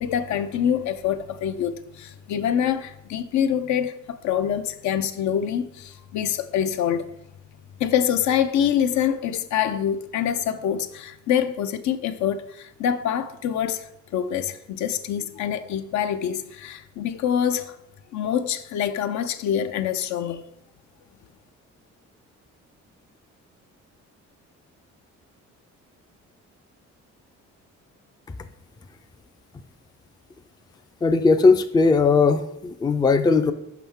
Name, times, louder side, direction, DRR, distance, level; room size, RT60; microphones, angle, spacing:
voice 1, 0.0-7.1 7.8-17.8 18.1-20.5, left 9 dB, 70° left, 0.5 m, -25 dB
voice 2, 31.0-33.5, left 4 dB, 15° left, 0.3 m, -18 dB
5.8 x 5.4 x 3.5 m
cardioid pair, 90°, 30 cm